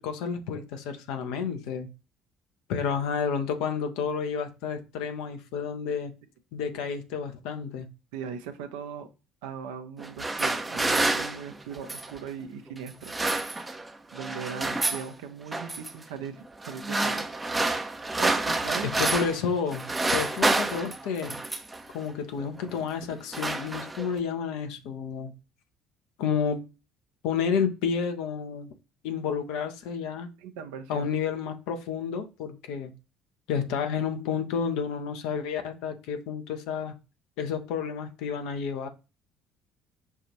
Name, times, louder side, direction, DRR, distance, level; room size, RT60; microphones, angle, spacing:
voice 1, 0.0-1.9 2.7-6.1 6.5-7.9 18.8-21.4 21.9-25.3 26.2-26.6 27.2-28.7 29.0-30.3 30.9-32.9 33.5-37.0 37.4-38.9, left 6 dB, 65° left, 0.7 m, -30 dB
voice 2, 8.1-9.1 9.4-13.8 14.1-17.3 18.2-18.9 30.4-31.1, right 7 dB, 70° right, 0.6 m, -39 dB
sound 1, 10.0-12.2 12.9-13.9 14.2-15.1 15.5-15.9 16.6-19.4 19.7-21.8 22.6-22.8 23.1-24.2, right 2 dB, 15° right, 0.6 m, -28 dB
5.5 x 2.5 x 3.0 m
figure-of-eight pair, 55°, 0 cm